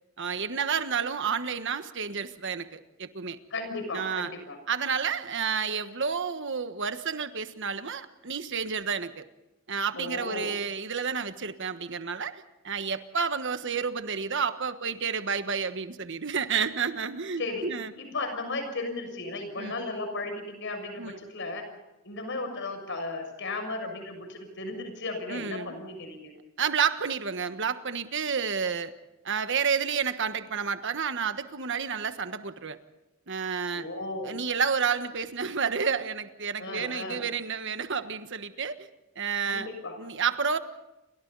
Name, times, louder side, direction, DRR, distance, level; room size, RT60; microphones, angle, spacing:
voice 1, 0.2-3.4 3.9-4.3 4.7-9.2 9.7-17.9 19.6-19.7 21.0-21.2 25.3-25.7 26.6-28.9 29.2-32.8 33.3-33.9 34.2-38.9 39.1-39.7 40.0-40.6, right 6 dB, 55° right, 10 dB, 1.4 m, -30 dB
voice 2, 3.5-4.6 10.0-10.5 17.4-17.7 18.0-21.6 22.0-26.3 33.7-34.4 36.6-37.2 39.4-40.0, left 2 dB, 60° left, 6 dB, 6.7 m, -35 dB
29.0 x 24.5 x 4.1 m, 1.0 s
head